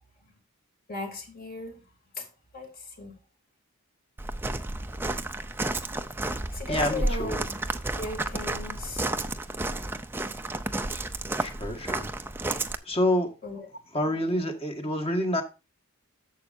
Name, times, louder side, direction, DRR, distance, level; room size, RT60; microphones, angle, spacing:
voice 1, 0.9-1.8 2.2-2.3 2.5-3.2 6.2-7.6 8.0-9.1 13.4-13.7, left 2 dB, 40° left, 2.8 m, -37 dB
Walk footsteps, 4.2-12.8, right 2 dB, 10° right, 0.5 m, -31 dB
voice 2, 6.7-7.4 11.4-12.1 12.8-13.3 13.9-15.4, left 1 dB, 25° left, 1.7 m, -27 dB
11.5 x 7.5 x 2.7 m
head